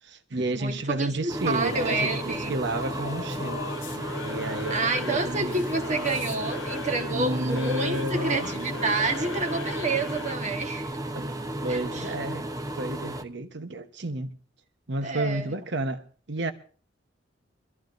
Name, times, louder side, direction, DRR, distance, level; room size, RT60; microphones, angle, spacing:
voice 1, 0.0-3.7 4.2-5.7 7.1-8.5 11.1-12.5 12.8-14.4 14.9-16.5, right 2 dB, 65° right, 1.1 m, -31 dB
voice 2, 0.6-2.5 4.7-10.9 11.7-12.1 15.0-15.6, right 3 dB, 40° right, 1.4 m, -29 dB
sound 1, 1.3-13.2, right 1 dB, 20° right, 0.8 m, -34 dB
Singing / Musical instrument, 1.6-10.5, left 5 dB, 70° left, 0.7 m, -39 dB
24.5 x 14.5 x 2.6 m
head